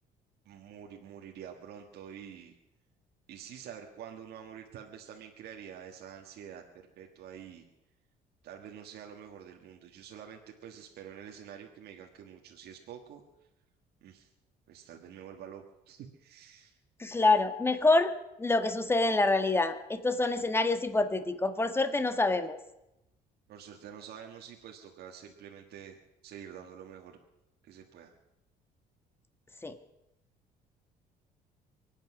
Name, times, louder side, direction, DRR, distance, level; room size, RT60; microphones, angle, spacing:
voice 1, 0.4-2.6 3.3-7.7 8.4-13.2 14.0-14.3 14.7-16.8 23.5-26.0 26.2-27.2 27.6-28.1, right 8 dB, 70° right, 2 dB, 1.6 m, -47 dB
voice 2, 17.0-18.1 18.4-22.6 29.6-29.7, left 2 dB, 15° left, 9 dB, 1.4 m, -26 dB
24.0 x 9.1 x 6.2 m, 0.92 s
cardioid pair, 110°, 17 cm